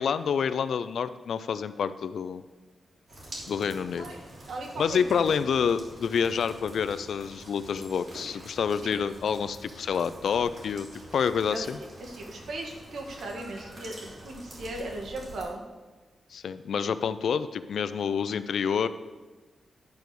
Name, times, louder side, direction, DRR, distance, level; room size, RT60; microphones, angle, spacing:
voice 1, 0.0-2.4 3.5-4.1 4.8-10.9 11.1-11.8 16.3-18.9, left 7 dB, 70° left, 13 dB, 0.5 m, -28 dB
sound 1, 3.1-15.4, right 1 dB, 45° right, 3.3 m, -46 dB
voice 2, 4.5-5.4 8.8-9.0 11.5-11.7 12.0-15.6, right 2 dB, 85° right, 1 dB, 1.9 m, -37 dB
11.5 x 4.7 x 6.8 m, 1.2 s
wide cardioid pair, 175°, 0 cm